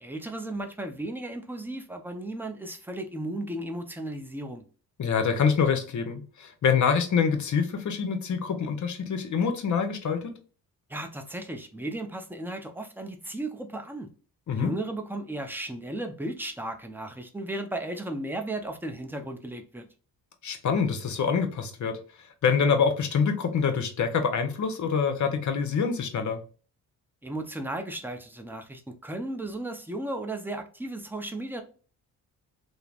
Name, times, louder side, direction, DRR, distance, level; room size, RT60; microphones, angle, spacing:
voice 1, 0.0-4.6 10.9-14.1 14.6-19.9 27.2-31.6, right 1 dB, 5° right, 0.5 m, -35 dB
voice 2, 5.0-10.4 14.5-14.7 20.4-22.0 22.4-26.4, left 6 dB, 50° left, 0.7 m, -25 dB
3.1 x 2.0 x 2.3 m
cardioid pair, 85°, 37 cm